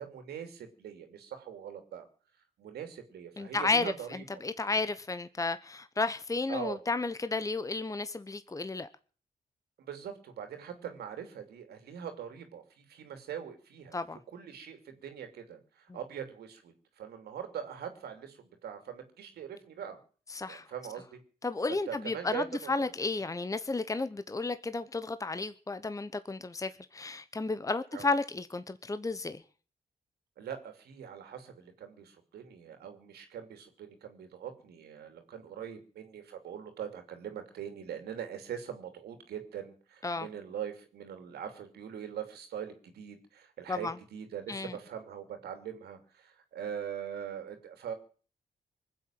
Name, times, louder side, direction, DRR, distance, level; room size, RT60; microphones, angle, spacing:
voice 1, 0.0-2.0 2.6-4.4 6.5-6.8 9.8-14.0 14.3-20.0 20.5-21.2 21.9-23.2 27.9-28.1 30.4-47.9, right 8 dB, 85° right, 2.8 m, -42 dB
voice 2, 3.4-8.9 13.9-14.2 15.9-16.0 20.3-20.7 21.4-29.4 40.0-40.3 43.7-43.9 44.5-44.8, left 3 dB, 20° left, 1.0 m, -33 dB
20.5 x 7.7 x 9.1 m
cardioid pair, 65°, 16 cm